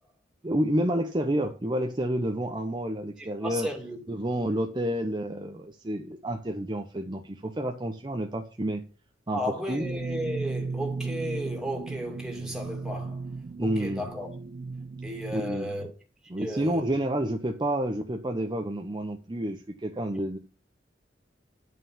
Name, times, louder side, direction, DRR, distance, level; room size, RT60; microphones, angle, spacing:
voice 1, 0.4-3.7 4.1-8.8 9.3-9.4 9.7-9.8 13.6-14.1 15.3-15.7 16.3-20.4, right 1 dB, 25° right, 0.7 m, -29 dB
voice 2, 3.2-4.0 9.3-13.2 13.6-14.3 15.0-15.9 16.4-16.9 20.1-20.2, equal, 5° right, 2.3 m, -34 dB
sound 1, 9.8-15.6, right 4 dB, 45° right, 0.4 m, -35 dB
9.4 x 5.7 x 5.6 m
head